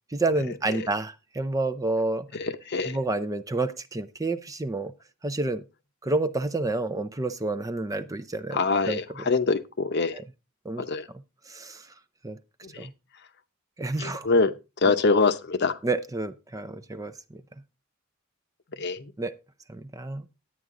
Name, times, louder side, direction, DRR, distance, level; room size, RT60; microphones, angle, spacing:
voice 1, 0.1-2.3 2.9-4.9 5.2-5.6 6.0-8.6 8.9-9.0 10.6-10.8 11.5-11.9 12.2-12.4 12.8-12.9 13.8-14.3 15.8-17.4 19.2-19.3 19.7-20.2, right 2 dB, 15° right, 0.5 m, -29 dB
voice 2, 2.3-3.0 8.5-10.2 10.8-11.1 12.6-12.9 14.0-15.8 18.7-19.1, left 4 dB, 55° left, 0.8 m, -25 dB
11.0 x 9.2 x 3.7 m
head